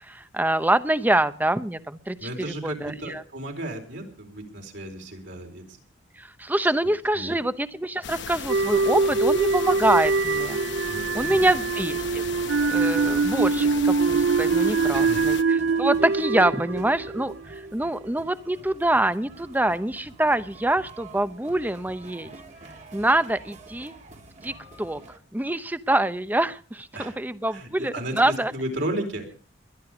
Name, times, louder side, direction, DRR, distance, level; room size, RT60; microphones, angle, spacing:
voice 1, 0.0-2.3 2.6-3.2 6.2-10.6 11.1-12.2 12.7-22.3 22.9-23.9 24.4-25.0 25.3-28.5, right 1 dB, 10° right, 12 dB, 0.8 m, -25 dB
voice 2, 2.2-5.8 7.1-7.4 10.9-11.5 14.9-15.3 26.9-27.2 27.5-29.3, right 1 dB, 65° right, 2 dB, 4.4 m, -34 dB
sound 1, 8.0-15.4, left 6 dB, 65° left, 0.9 m, -37 dB
sound 2, 8.5-17.7, right 4 dB, 85° right, 0.7 m, -23 dB
sound 3, 11.2-25.2, right 2 dB, 40° right, 1.8 m, -47 dB
21.5 x 11.5 x 5.0 m, 0.40 s
head